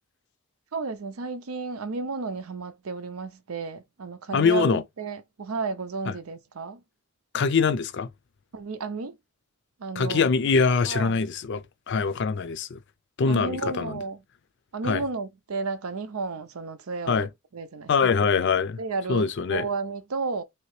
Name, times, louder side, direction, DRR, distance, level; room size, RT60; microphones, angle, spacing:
voice 1, 0.7-6.8 8.5-9.2 9.8-10.3 10.9-11.2 13.3-14.2 14.7-17.3 17.5-18.1 18.5-20.4, right 4 dB, 85° right, 0.6 m, -33 dB
voice 2, 4.3-4.8 6.1-6.2 7.3-8.1 10.0-11.6 11.9-12.8 13.2-14.0 14.8-15.0 17.1-17.3 17.9-18.8 19.1-19.7, left 5 dB, 55° left, 0.4 m, -23 dB
3.2 x 2.8 x 3.1 m
head